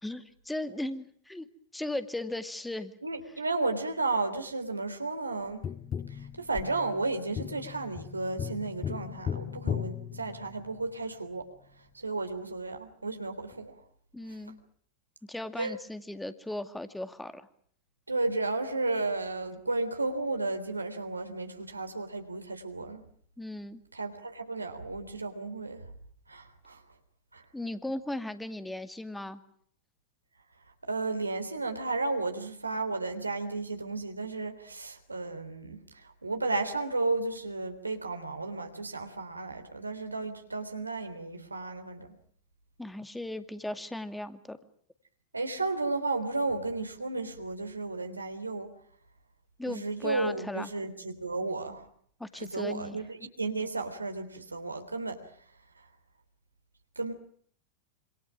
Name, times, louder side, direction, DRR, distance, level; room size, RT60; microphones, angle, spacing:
voice 1, 0.0-1.5 1.7-2.9 14.1-14.6 15.3-17.5 23.4-23.8 27.5-29.4 42.8-44.6 49.6-50.7 52.2-53.0, left 1 dB, 5° left, 10 dB, 2.3 m, -37 dB
voice 2, 3.0-5.7 6.1-11.5 11.8-13.8 14.3-14.4 15.6-15.8 18.1-23.1 23.9-25.9 26.3-26.8 27.3-27.4 30.8-42.2 45.3-48.7 49.6-51.9 52.4-55.2 55.8-55.9 57.0-57.1, right 3 dB, 80° right, 5 dB, 3.5 m, -33 dB
Tap, 5.6-10.9 13.5-13.6, left 8 dB, 25° left, 1.0 m, -37 dB
27.0 x 26.5 x 6.3 m, 0.63 s
figure-of-eight pair, 90°, 0 cm